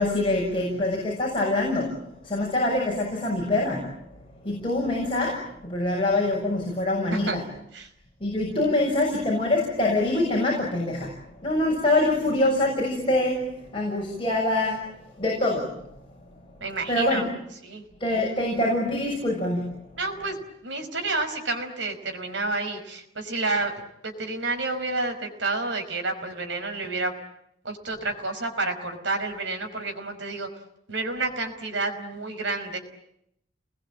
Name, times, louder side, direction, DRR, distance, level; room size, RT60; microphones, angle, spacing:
voice 1, 0.0-3.9 4.4-7.4 8.2-11.1 11.4-14.9 15.2-15.7 16.9-17.2 18.0-19.8, left 2 dB, 30° left, -2 dB, 6.8 m, -25 dB
voice 2, 16.6-17.3 17.6-17.8 20.0-20.4 20.6-27.1 27.6-30.5 30.9-32.8, right 3 dB, 90° right, 5 dB, 5.4 m, -30 dB
30.0 x 21.5 x 9.0 m, 0.77 s
head